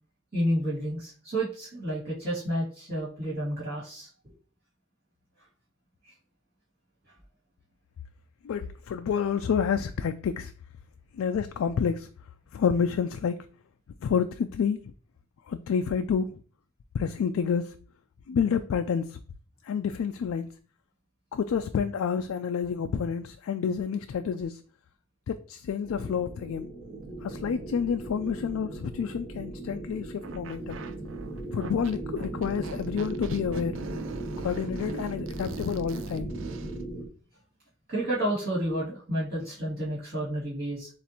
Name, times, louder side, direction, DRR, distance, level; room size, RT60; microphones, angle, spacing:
voice 1, 0.3-4.3 6.0-6.1 37.9-40.9, right 1 dB, 45° right, 2.3 m, -30 dB
voice 2, 8.4-10.5 11.1-12.1 12.5-13.4 14.0-14.9 15.5-16.4 16.9-17.7 18.3-19.2 19.6-20.5 21.3-24.6 25.3-26.7 27.2-30.8 31.5-33.8 34.4-36.3, left 7 dB, 70° left, 0.3 m, -29 dB
sound 1, 25.8-37.1, right 2 dB, 25° right, 0.8 m, -37 dB
sound 2, 30.2-36.8, right 5 dB, 60° right, 0.4 m, -44 dB
7.1 x 2.5 x 2.9 m
head